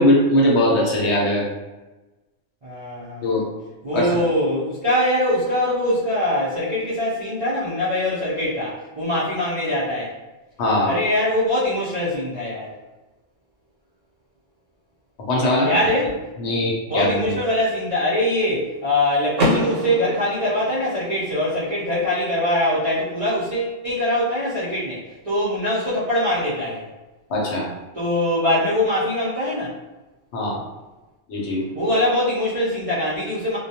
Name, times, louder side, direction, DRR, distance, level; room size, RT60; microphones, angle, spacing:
voice 1, 0.0-1.4 3.2-3.4 3.9-4.2 10.6-10.9 15.3-15.7 16.4-17.3 27.3-27.7 30.3-30.6 31.3-31.6, left 1 dB, 65° left, -3 dB, 0.9 m, -20 dB
voice 2, 2.6-3.5 3.8-10.1 10.8-12.7 15.6-16.1 16.9-26.8 27.9-29.7 31.7-33.6, left 1 dB, 45° right, -11 dB, 0.4 m, -23 dB
Car / Door, 19.3-21.3, equal, 85° right, 1.0 m, -25 dB
2.2 x 2.2 x 2.7 m, 1.1 s
omnidirectional pair, 1.3 m